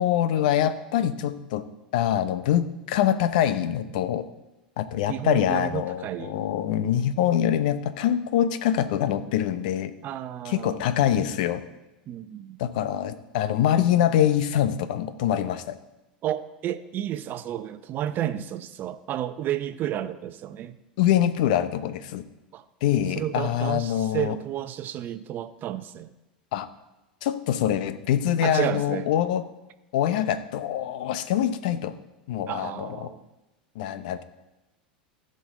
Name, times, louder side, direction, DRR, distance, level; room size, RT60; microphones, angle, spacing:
voice 1, 0.0-1.6 1.9-4.2 4.8-9.9 10.4-11.6 12.6-15.8 21.0-22.2 22.8-24.4 26.5-26.7 27.2-29.4 29.9-31.9 32.3-33.1 33.8-34.2, left 10 dB, 65° left, 13 dB, 0.7 m, -24 dB
voice 2, 5.1-6.4 10.0-10.9 12.1-12.6 16.2-20.8 22.5-22.6 23.2-26.1 28.4-29.1 32.5-33.2, right 11 dB, 40° right, 12 dB, 0.7 m, -31 dB
15.5 x 5.4 x 3.7 m, 1.0 s
hypercardioid pair, 85°, 5 cm